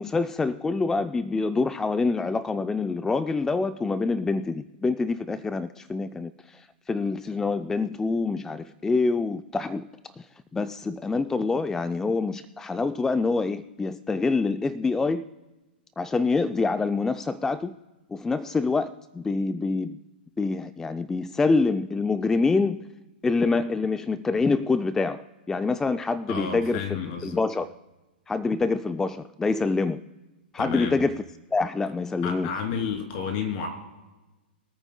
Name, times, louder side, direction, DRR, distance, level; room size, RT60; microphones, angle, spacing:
voice 1, 0.0-9.9 10.2-10.3 10.5-15.2 16.0-17.7 18.1-20.0 20.4-22.9 23.2-26.8 27.2-27.7 28.3-30.0 30.5-31.2 31.5-32.5, left 3 dB, 10° left, 0.3 m, -26 dB
voice 2, 26.3-27.4 30.6-31.0 32.2-33.7, left 6 dB, 45° left, 3.0 m, -31 dB
23.5 x 8.9 x 2.2 m
hypercardioid pair, 120°, 6 cm